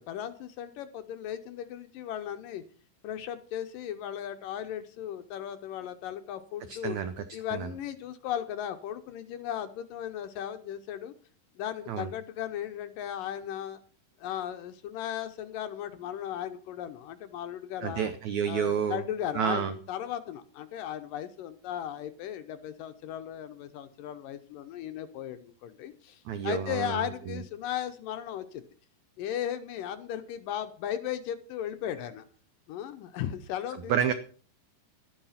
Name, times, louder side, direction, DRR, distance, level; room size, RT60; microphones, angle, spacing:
voice 1, 0.0-2.6 3.0-7.0 7.3-11.1 11.6-13.8 14.2-18.1 18.5-28.6 29.2-32.3 32.7-34.0, left 10 dB, 70° left, 9 dB, 2.2 m, -36 dB
voice 2, 6.7-7.1 7.5-7.7 11.9-12.1 17.8-19.0 19.3-19.7 26.3-27.4 33.9-34.1, right 8 dB, 85° right, 10 dB, 1.6 m, -29 dB
13.0 x 10.5 x 5.7 m, 0.41 s
omnidirectional pair, 4.5 m